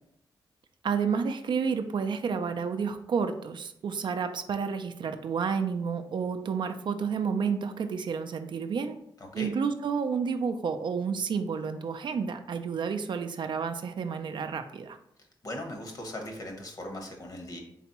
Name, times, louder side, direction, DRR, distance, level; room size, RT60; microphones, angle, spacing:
voice 1, 0.8-9.0 9.3-15.0, right 6 dB, 65° right, 8 dB, 0.4 m, -30 dB
voice 2, 9.2-9.5 15.4-17.6, left 1 dB, 45° left, 3 dB, 1.0 m, -39 dB
4.0 x 3.4 x 2.9 m, 0.72 s
cardioid pair, 80°, 9 cm